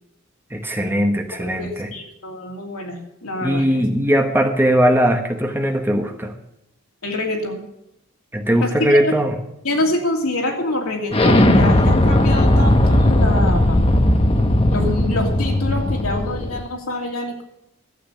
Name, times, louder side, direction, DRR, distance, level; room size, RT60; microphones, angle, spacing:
voice 1, 0.5-1.9 3.4-6.3 8.3-9.4, equal, 10° right, 5 dB, 1.1 m, -19 dB
voice 2, 1.5-3.8 7.0-7.6 8.6-9.1 9.6-13.8 14.7-17.4, left 1 dB, 85° left, 1 dB, 2.8 m, -25 dB
Explosion, 11.1-16.6, left 1 dB, 25° left, 1.0 m, -16 dB
12.0 x 8.0 x 6.9 m, 0.81 s
head